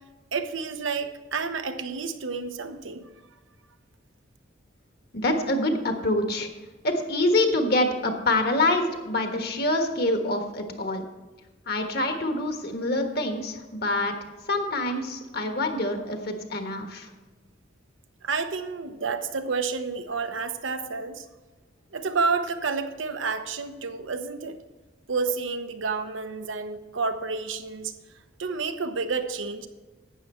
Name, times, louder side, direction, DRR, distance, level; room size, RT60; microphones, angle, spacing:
voice 1, 0.3-3.1 18.2-21.2 21.9-24.6 25.1-27.9 28.4-29.7, right 4 dB, 90° right, 8 dB, 0.9 m, -30 dB
voice 2, 5.1-6.5 6.8-11.0 11.7-14.1 14.5-17.1, left 1 dB, 55° left, 5 dB, 1.4 m, -26 dB
12.0 x 8.6 x 4.3 m, 1.2 s
head